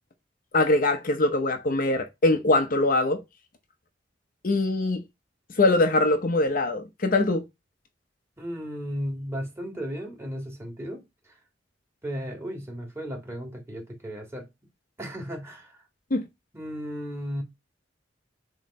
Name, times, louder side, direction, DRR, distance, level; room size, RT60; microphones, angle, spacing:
voice 1, 0.5-3.2 4.4-5.0 5.6-7.4 16.1-16.3, left 2 dB, 50° left, 0.8 m, -22 dB
voice 2, 8.4-11.4 12.0-14.5 15.0-15.8 16.5-17.4, equal, 15° right, 2.0 m, -35 dB
7.5 x 3.2 x 4.2 m
head